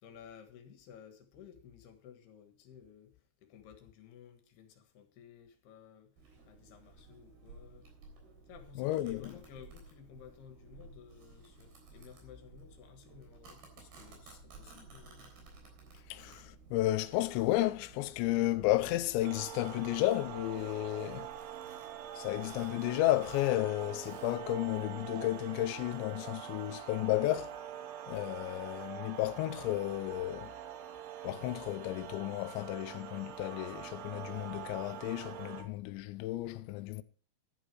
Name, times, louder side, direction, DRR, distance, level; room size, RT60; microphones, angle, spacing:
voice 1, 0.0-6.1 6.4-7.9 8.5-15.3, left 8 dB, 65° left, 3.3 m, -55 dB
Domestic sounds home sounds, 6.2-25.3, right 3 dB, 55° right, 5.4 m, -56 dB
voice 2, 8.8-9.3 16.1-21.3 22.1-27.6 28.1-30.5 31.2-37.0, left 16 dB, 80° left, 2.9 m, -33 dB
sound 1, 19.2-35.6, right 10 dB, 90° right, 3.6 m, -45 dB
11.5 x 10.0 x 4.7 m
omnidirectional pair, 5.3 m